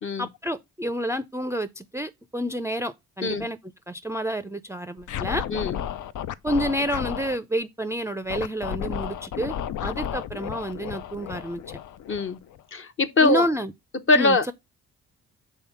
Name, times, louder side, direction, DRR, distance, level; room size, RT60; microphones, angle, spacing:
voice 1, 0.2-3.6 3.9-5.4 6.4-9.6 9.8-11.6 13.2-13.7 14.1-14.5, equal, 10° right, 0.5 m, -29 dB
Scratching (performance technique), 5.0-7.4 8.3-12.6, left 9 dB, 55° left, 0.5 m, -33 dB
voice 2, 12.1-12.4 12.7-13.5 14.1-14.4, left 3 dB, 35° left, 0.9 m, -22 dB
5.6 x 3.6 x 5.6 m
hypercardioid pair, 45°, 36 cm